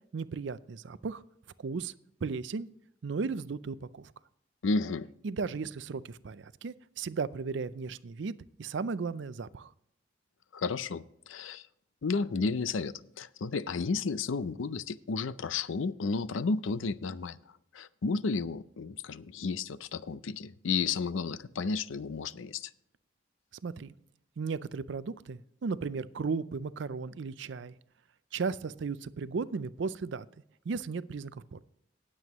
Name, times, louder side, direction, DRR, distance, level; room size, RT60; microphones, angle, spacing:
voice 1, 0.1-1.2 1.6-1.9 2.2-2.7 3.0-4.1 5.2-8.3 8.6-9.7 23.6-23.9 24.4-27.7 28.3-30.3 30.7-31.6, right 4 dB, 65° right, 0.4 m, -35 dB
voice 2, 4.6-5.1 10.5-11.7 12.0-17.4 17.7-22.7, left 4 dB, 75° left, 0.5 m, -32 dB
18.5 x 7.7 x 3.0 m
head